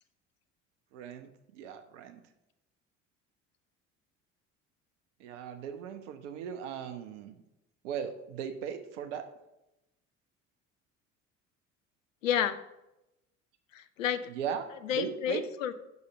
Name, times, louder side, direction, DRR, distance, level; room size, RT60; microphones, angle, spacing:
voice 1, 0.9-2.2 5.2-7.4 7.8-9.3 14.3-14.7 14.9-15.4, right 8 dB, 65° right, 7 dB, 1.0 m, -38 dB
voice 2, 12.2-12.6 13.7-14.3 14.8-15.7, left 9 dB, 75° left, 11 dB, 0.7 m, -30 dB
6.5 x 5.4 x 6.8 m, 0.90 s
figure-of-eight pair, 60°, 39 cm